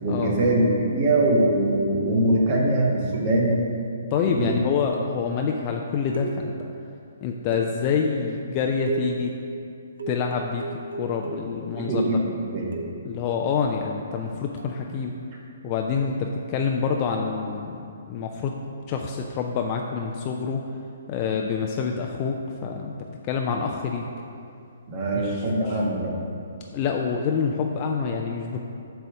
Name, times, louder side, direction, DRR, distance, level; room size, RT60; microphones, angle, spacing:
voice 1, 0.0-3.6 4.2-4.6 11.8-12.2 12.5-12.7 24.9-26.1, right 1 dB, 30° right, -3 dB, 1.3 m, -22 dB
sound 1, 3.1-3.7 4.9-5.3 6.1-6.7 7.5-8.0 8.9-9.3 10.0-11.6 12.7-13.1 14.6-14.8, right 4 dB, 65° right, 0.6 m, -35 dB
voice 2, 4.1-6.7 7.2-9.3 10.1-10.7 10.9-12.0 13.0-15.1 15.6-17.8 18.1-18.5 18.9-20.6 21.1-22.4 22.6-22.9 23.3-24.1 25.1-25.8 26.7-28.6, left 6 dB, 30° left, 2 dB, 0.4 m, -27 dB
7.7 x 3.4 x 6.3 m, 2.5 s
figure-of-eight pair, 125°, 0 cm